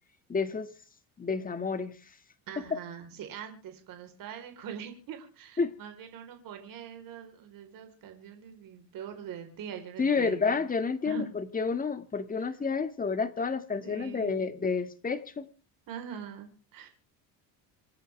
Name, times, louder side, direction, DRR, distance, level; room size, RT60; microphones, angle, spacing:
voice 1, 0.3-0.7 1.2-1.9 2.7-2.8 5.6-5.7 10.0-15.5, left 5 dB, 20° left, 9 dB, 2.0 m, -30 dB
voice 2, 2.5-10.6 11.0-11.3 13.7-14.5 15.9-16.9, right 8 dB, 60° right, 5 dB, 4.3 m, -43 dB
27.5 x 9.8 x 3.5 m, 0.39 s
cardioid pair, 120°, 38 cm